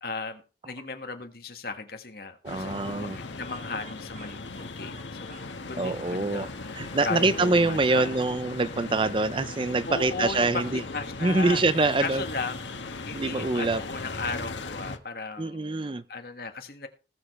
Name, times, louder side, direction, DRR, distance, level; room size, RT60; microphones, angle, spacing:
voice 1, 0.0-8.1 9.8-11.6 12.0-16.9, left 4 dB, 55° left, 1.7 m, -36 dB
voice 2, 2.4-3.2 5.7-6.5 6.7-10.8 11.2-12.2 13.1-13.8 15.4-16.0, right 3 dB, 30° right, 0.5 m, -25 dB
sound 1, 2.5-15.0, left 3 dB, 85° left, 1.4 m, -38 dB
Speech, 3.1-8.3, right 3 dB, 45° right, 2.2 m, -52 dB
Bowed string instrument, 6.8-12.9, left 2 dB, 30° left, 1.8 m, -47 dB
19.5 x 7.0 x 3.2 m
head